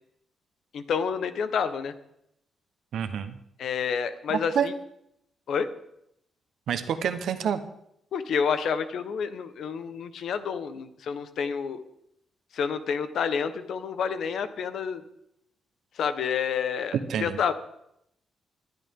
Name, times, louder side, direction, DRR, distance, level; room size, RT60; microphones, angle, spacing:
voice 1, 0.7-1.9 3.6-4.7 5.5-5.7 8.1-11.8 12.5-15.0 16.0-17.5, left 6 dB, 65° left, 10 dB, 1.1 m, -29 dB
voice 2, 2.9-3.4 4.3-4.7 6.7-7.6 17.1-17.4, right 8 dB, 70° right, 9 dB, 1.1 m, -28 dB
20.5 x 11.5 x 3.8 m, 0.76 s
cardioid pair, 145°, 0 cm